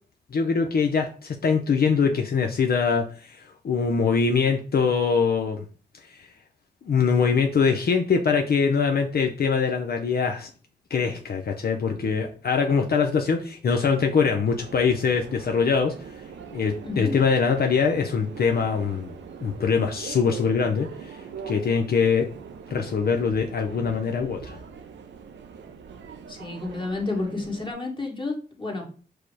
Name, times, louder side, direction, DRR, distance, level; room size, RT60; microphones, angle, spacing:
voice 1, 0.3-5.6 6.1-6.3 6.9-10.5 10.9-15.9 16.5-19.1 19.4-21.2 21.5-22.3 22.7-24.6, left 5 dB, 60° left, 3 dB, 0.5 m, -23 dB
Subway metro underground, 14.6-27.7, right 6 dB, 85° right, 0.5 m, -42 dB
voice 2, 26.3-28.9, left 3 dB, 25° left, 0 dB, 1.4 m, -30 dB
4.8 x 2.0 x 4.6 m, 0.39 s
cardioid pair, 65°, 18 cm